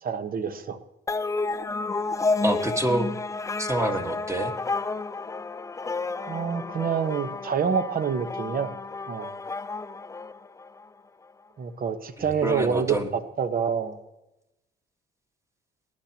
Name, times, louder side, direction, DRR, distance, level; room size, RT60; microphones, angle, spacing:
voice 1, 0.0-0.8 6.3-8.7 9.1-9.3 11.6-14.0, right 6 dB, 45° right, 10 dB, 1.1 m, -27 dB
sound 1, 1.1-10.9, left 3 dB, 15° left, 0.4 m, -31 dB
voice 2, 2.4-3.1 3.6-4.5 12.2-13.1, right 1 dB, 15° right, 5 dB, 1.5 m, -27 dB
18.0 x 10.5 x 2.9 m, 0.96 s
cardioid pair, 90°, 20 cm